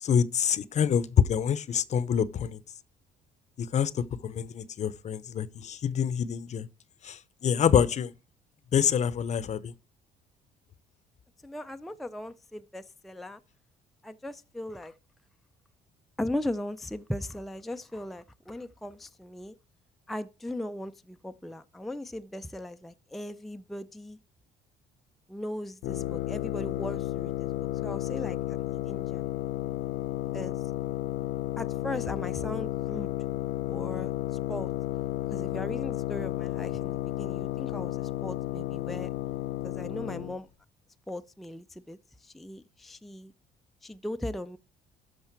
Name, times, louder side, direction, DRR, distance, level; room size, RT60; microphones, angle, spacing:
voice 1, 0.0-2.6 3.6-6.7 7.0-8.1 8.7-9.7, left 8 dB, 45° left, 0.7 m, -26 dB
voice 2, 11.4-13.4 14.0-14.9 16.2-19.5 20.1-24.2 25.3-27.5 27.8-29.3 30.3-30.6 31.6-33.1 33.7-34.1 34.5-34.7 35.3-39.1 39.6-40.5 41.1-43.3 43.8-44.6, left 1 dB, ahead, 0.4 m, -38 dB
sound 1, 25.8-40.4, left 15 dB, 85° left, 0.6 m, -32 dB
12.5 x 5.5 x 4.5 m
cardioid pair, 110°, 17 cm